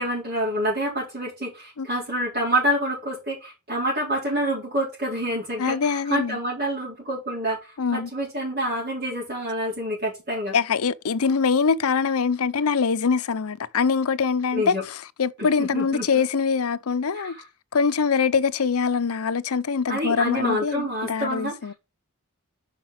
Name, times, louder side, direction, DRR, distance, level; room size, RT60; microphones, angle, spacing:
voice 1, 0.0-10.6 14.5-14.8 15.4-16.2 17.1-17.4 19.9-21.5, equal, 45° right, 4.1 m, -27 dB
voice 2, 5.6-6.4 7.8-8.1 10.5-17.4 17.7-21.7, left 5 dB, 75° left, 0.6 m, -23 dB
6.1 x 5.7 x 5.9 m
head